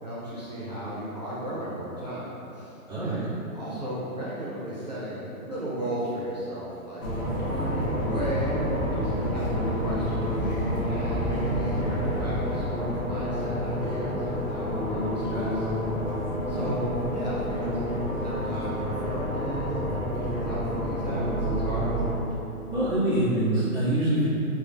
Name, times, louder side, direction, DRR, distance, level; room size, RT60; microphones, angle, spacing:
voice 1, 0.0-2.7 3.0-7.0 7.4-10.6 10.9-15.7 16.5-22.0, equal, 30° right, -10 dB, 0.4 m, -35 dB
voice 2, 2.9-3.2 16.5-16.6 22.7-24.3, right 1 dB, 5° left, -18 dB, 0.6 m, -25 dB
sound 1, 7.0-22.1, equal, 65° left, 1.0 m, -28 dB
4.3 x 2.4 x 2.3 m, 3.0 s
hypercardioid pair, 175°, 44 cm